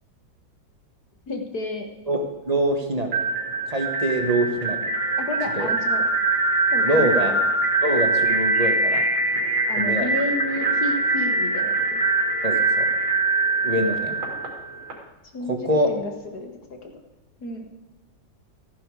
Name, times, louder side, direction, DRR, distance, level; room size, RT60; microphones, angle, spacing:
voice 1, 1.3-1.9 5.2-6.1 6.7-7.4 9.7-12.0 15.3-16.5 16.8-16.9 17.4-17.7, left 2 dB, 50° left, 4 dB, 2.2 m, -31 dB
voice 2, 2.1-3.2 3.7-4.8 5.6-5.7 6.8-7.3 7.8-9.0 9.8-10.1 12.4-12.9 13.6-14.2 15.4-15.9, right 1 dB, 20° right, 4 dB, 1.5 m, -24 dB
sound 1, 3.1-14.9, right 3 dB, 75° right, 3.6 m, -23 dB
14.5 x 10.0 x 4.9 m, 1.2 s
omnidirectional pair, 2.1 m